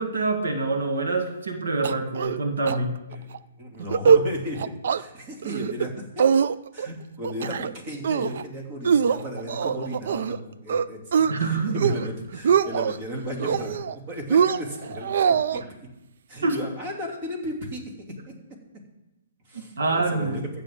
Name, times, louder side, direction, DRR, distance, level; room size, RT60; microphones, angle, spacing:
voice 1, 0.0-2.9 11.3-11.9 16.4-16.6 19.5-20.4, right 3 dB, 80° right, 4 dB, 1.7 m, -26 dB
sound 1, 1.8-2.4 2.7-2.8 3.1-3.4 3.8-4.2 4.6-5.0 5.4-5.9 6.2-6.9 7.2-7.7 8.0-8.4 8.8-10.4 10.7-11.3 11.7-12.1 12.3-13.0 13.4-13.9 14.3-15.6, right 7 dB, 60° right, 0.4 m, -22 dB
voice 2, 3.6-6.3 6.7-15.9 16.3-17.9 18.3-18.4 19.5-20.4, equal, 35° right, 1 dB, 3.0 m, -35 dB
15.5 x 7.0 x 3.8 m, 0.98 s
hypercardioid pair, 145°, 0 cm